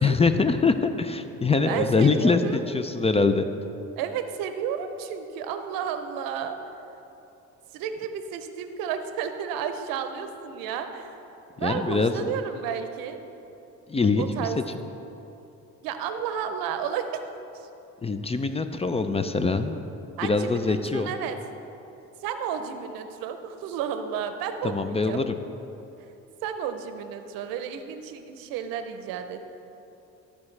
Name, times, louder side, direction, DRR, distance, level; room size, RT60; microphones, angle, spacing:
voice 1, 0.0-3.5 11.6-12.3 13.9-14.5 18.0-19.8 20.2-21.1 24.6-25.4, left 4 dB, 20° left, 9 dB, 0.4 m, -23 dB
voice 2, 1.7-2.6 4.0-6.6 7.7-11.1 11.6-13.2 14.2-14.6 15.8-17.2 17.5-17.7 20.2-21.4 22.2-25.2 26.4-29.4, right 8 dB, 80° right, 8 dB, 0.7 m, -32 dB
13.5 x 4.9 x 3.2 m, 3.0 s
supercardioid pair, 70°, 34 cm